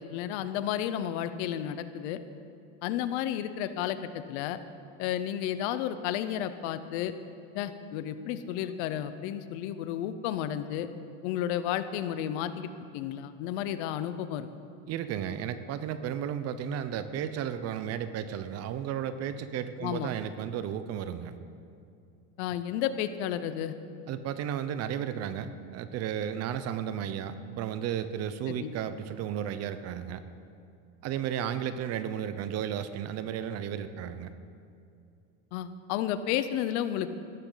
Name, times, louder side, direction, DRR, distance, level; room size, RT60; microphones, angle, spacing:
voice 1, 0.0-2.2 2.8-4.6 5.0-7.1 7.5-10.9 11.2-14.5 19.8-20.1 22.4-23.7 28.5-28.7 35.5-37.1, left 10 dB, 70° left, 12 dB, 0.9 m, -32 dB
voice 2, 14.9-21.4 24.1-30.2 31.0-34.3, right 9 dB, 45° right, 12 dB, 0.7 m, -33 dB
16.0 x 13.5 x 4.0 m, 2.5 s
supercardioid pair, 135°, 36 cm